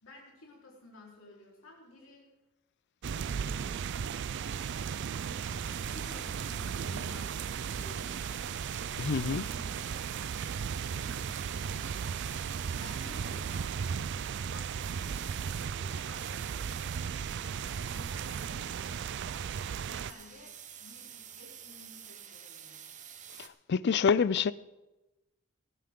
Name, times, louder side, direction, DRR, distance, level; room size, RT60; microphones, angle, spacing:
voice 1, 0.0-2.3 3.1-3.8 5.8-8.5 9.5-10.1 10.8-13.7 14.4-19.1 19.9-22.9, left 2 dB, 80° left, 4.1 m, -54 dB
sound 1, 3.0-20.1, right 7 dB, 60° right, 0.4 m, -36 dB
sound 2, 4.5-23.5, right 8 dB, 35° right, 0.9 m, -49 dB
voice 2, 9.0-9.5 23.7-24.5, left 6 dB, 55° left, 0.4 m, -26 dB
19.5 x 11.5 x 3.8 m
head